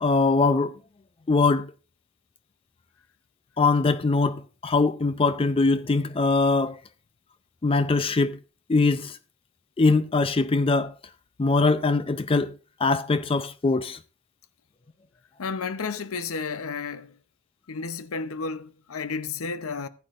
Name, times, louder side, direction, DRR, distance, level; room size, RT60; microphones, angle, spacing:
voice 1, 0.0-0.7 1.3-1.7 3.6-6.8 7.6-8.4 8.7-9.2 9.8-10.9 11.4-12.5 12.8-14.0, left 3 dB, 25° left, 0.4 m, -22 dB
voice 2, 15.4-17.2 17.7-19.9, left 4 dB, 75° left, 0.7 m, -32 dB
15.0 x 9.5 x 2.5 m
head